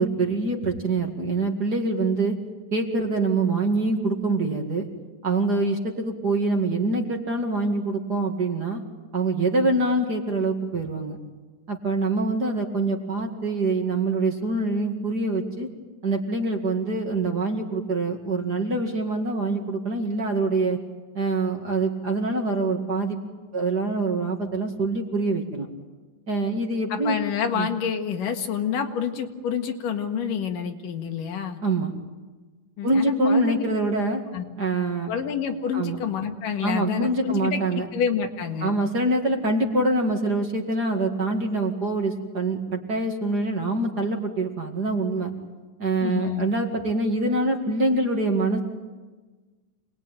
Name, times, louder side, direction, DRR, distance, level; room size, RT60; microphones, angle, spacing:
voice 1, 0.0-2.4 2.7-4.9 5.2-8.8 9.1-11.2 11.7-15.7 16.0-20.8 21.2-23.2 23.5-25.7 26.3-27.2 27.5-27.7 31.6-31.9 32.8-34.2 34.6-35.1 35.7-36.0 36.6-37.9 38.6-45.3 45.8-48.6, right 2 dB, 35° right, 2 dB, 2.2 m, -25 dB
voice 2, 26.9-31.6 32.8-33.6 34.3-34.4 35.1-38.7 46.0-46.5, left 7 dB, 85° left, 4 dB, 3.4 m, -28 dB
27.0 x 21.0 x 9.1 m, 1.3 s
omnidirectional pair, 3.7 m